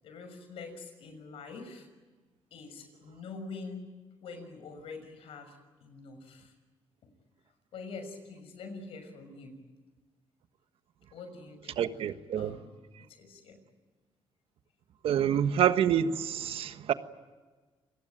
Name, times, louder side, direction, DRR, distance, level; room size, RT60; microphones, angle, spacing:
voice 1, 0.0-1.9 2.5-3.9 4.2-6.5 7.7-9.6 11.1-11.8 12.4-13.6, left 4 dB, 75° left, 6.3 m, -45 dB
voice 2, 11.8-12.6 15.0-16.9, right 9 dB, 75° right, 1.4 m, -27 dB
27.0 x 20.5 x 9.2 m
cardioid pair, 85°, 10 cm